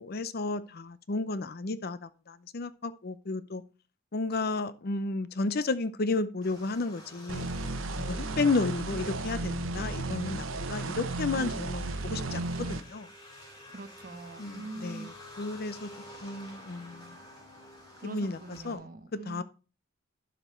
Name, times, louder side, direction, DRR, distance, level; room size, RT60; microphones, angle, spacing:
voice 1, 0.0-3.6 4.1-7.5 8.1-13.1 14.4-15.1 15.4-15.9 16.2-17.1 18.0-18.4 18.6-18.8 19.3-19.4, left 3 dB, 50° left, 0.6 m, -32 dB
sound 1, 6.4-18.7, left 1 dB, 20° left, 3.0 m, -51 dB
sound 2, 7.3-12.8, right 2 dB, 80° right, 1.0 m, -34 dB
voice 2, 13.7-15.6 18.0-19.4, right 2 dB, 45° right, 1.1 m, -44 dB
12.0 x 5.2 x 4.4 m
head